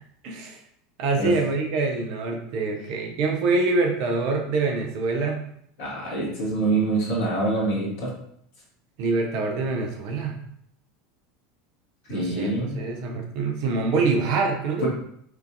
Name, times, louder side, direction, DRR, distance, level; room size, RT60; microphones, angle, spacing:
voice 1, 0.2-0.6 1.0-5.4 9.0-10.4 12.1-14.9, right 3 dB, 50° right, 2 dB, 0.6 m, -25 dB
voice 2, 5.8-8.1 12.0-12.7 14.8-14.9, right 2 dB, 55° left, -3 dB, 1.3 m, -25 dB
4.4 x 2.6 x 2.6 m, 0.69 s
figure-of-eight pair, 75°, 0 cm